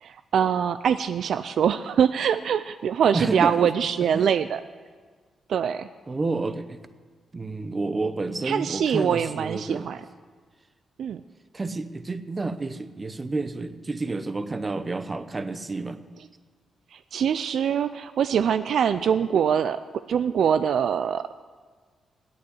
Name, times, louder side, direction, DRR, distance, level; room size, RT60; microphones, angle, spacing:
voice 1, 0.0-4.6 5.5-5.9 8.4-10.0 11.0-11.2 16.9-19.8 20.1-21.4, right 8 dB, 75° right, 12 dB, 0.3 m, -23 dB
voice 2, 3.1-3.7 4.1-4.3 6.1-6.8 7.3-9.9 11.5-16.0, right 3 dB, 30° right, 12 dB, 0.8 m, -30 dB
9.3 x 8.6 x 9.7 m, 1.5 s
cardioid pair, 65°, 0 cm